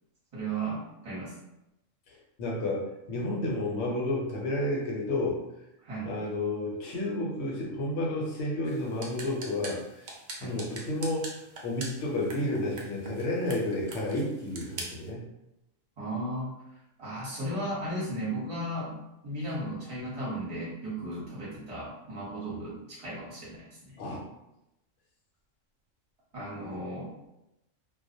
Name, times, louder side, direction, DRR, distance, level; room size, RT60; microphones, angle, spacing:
voice 1, 0.3-1.3 5.8-6.1 10.4-10.6 16.0-16.6 17.0-24.0 26.3-27.3, right 1 dB, 30° right, -7 dB, 0.8 m, -35 dB
voice 2, 2.4-5.4 6.0-10.1 10.4-11.3 11.6-15.2 22.5-22.6 24.0-24.2, left 1 dB, 65° left, -2 dB, 0.9 m, -31 dB
sound 1, 8.6-15.1, right 2 dB, 85° right, 0.4 m, -44 dB
2.3 x 2.0 x 2.6 m, 0.89 s
omnidirectional pair, 1.3 m